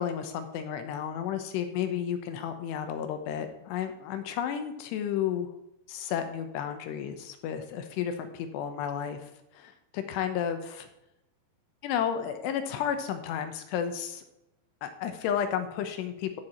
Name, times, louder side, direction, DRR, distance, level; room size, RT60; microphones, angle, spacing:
voice 1, 0.0-5.5 5.9-9.2 9.5-10.9 11.8-14.2 14.8-16.4, left 9 dB, 80° left, 7 dB, 2.8 m, -32 dB
12.0 x 4.8 x 4.2 m, 0.86 s
omnidirectional pair, 5.2 m